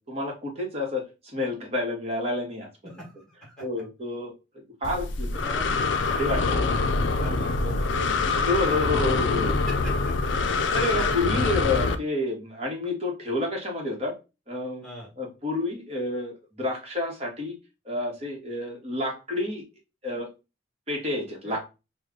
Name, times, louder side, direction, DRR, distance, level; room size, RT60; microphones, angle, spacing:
voice 1, 0.1-2.7 3.6-4.3 4.8-5.3 6.1-6.6 8.4-9.5 10.7-14.1 14.5-14.8 15.2-17.6 17.8-19.6 20.0-20.3 20.9-21.7, left 2 dB, 35° right, -1 dB, 1.2 m, -29 dB
voice 2, 2.8-3.5 5.3-5.7 6.1-6.6 7.0-10.1 14.8-15.1 21.4-21.6, equal, 5° left, -5 dB, 1.4 m, -41 dB
Breathing, 4.8-12.0, left 3 dB, 75° left, 0.4 m, -25 dB
3.2 x 2.2 x 3.6 m, 0.27 s
head